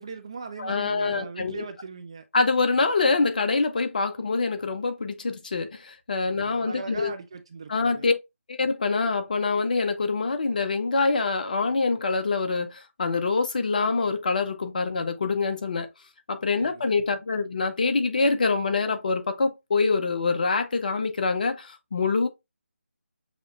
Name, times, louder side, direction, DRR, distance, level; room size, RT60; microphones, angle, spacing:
voice 1, 0.0-2.3 6.2-8.1 16.6-16.9, right 5 dB, 25° right, 0.3 m, -39 dB
voice 2, 0.6-1.6 2.3-7.1 7.7-8.2 8.5-15.9 16.3-22.3, left 4 dB, 35° left, 0.7 m, -25 dB
6.2 x 3.0 x 2.4 m
figure-of-eight pair, 160°, 7 cm